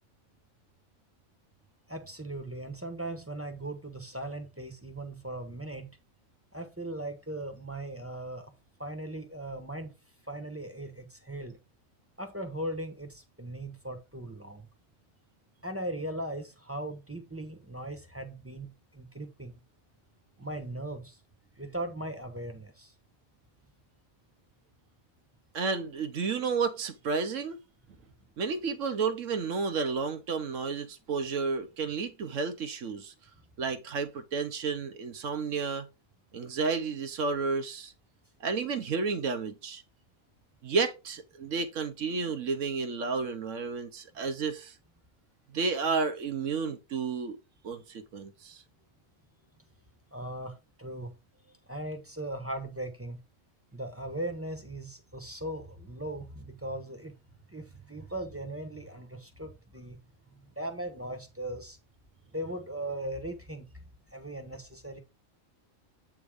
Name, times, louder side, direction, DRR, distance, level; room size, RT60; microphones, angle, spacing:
voice 1, 1.9-6.0 6.5-8.5 8.8-9.9 10.2-11.6 12.2-14.7 15.6-19.6 20.4-21.2 21.6-22.9 50.1-51.1 51.7-53.2 53.7-60.0 60.3-61.8 62.3-63.7 64.1-65.0, right 1 dB, 10° right, 0.9 m, -38 dB
voice 2, 25.5-27.6 28.4-33.1 33.6-35.9 36.3-37.9 38.4-39.8 40.6-44.7 45.5-47.4 47.6-48.6, right 4 dB, 65° right, 1.2 m, -31 dB
8.2 x 3.5 x 4.9 m
omnidirectional pair, 1.5 m